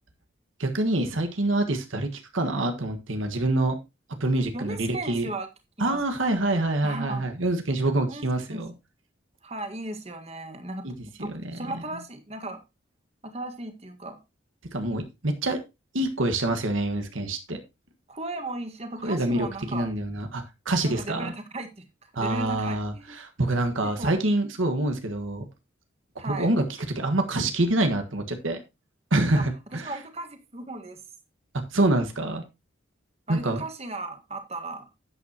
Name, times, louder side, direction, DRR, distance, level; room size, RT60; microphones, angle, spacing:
voice 1, 0.6-3.7 4.2-5.3 5.8-8.7 10.8-10.9 11.2-11.3 14.7-15.6 15.9-17.6 19.0-19.5 19.7-21.3 22.1-25.4 26.3-26.6 26.9-28.6 29.1-29.9 31.7-32.4 33.3-33.6, right 2 dB, 90° right, 6 dB, 1.6 m, -26 dB
voice 2, 4.5-5.5 5.8-6.0 6.8-7.3 8.1-8.2 8.5-8.6 9.4-12.6 13.2-14.2 18.1-19.9 20.8-23.2 23.8-24.2 26.2-26.5 29.3-29.4 29.7-31.0 33.3-34.9, right 2 dB, 30° right, 6 dB, 1.6 m, -36 dB
11.5 x 8.6 x 2.9 m, 0.25 s
head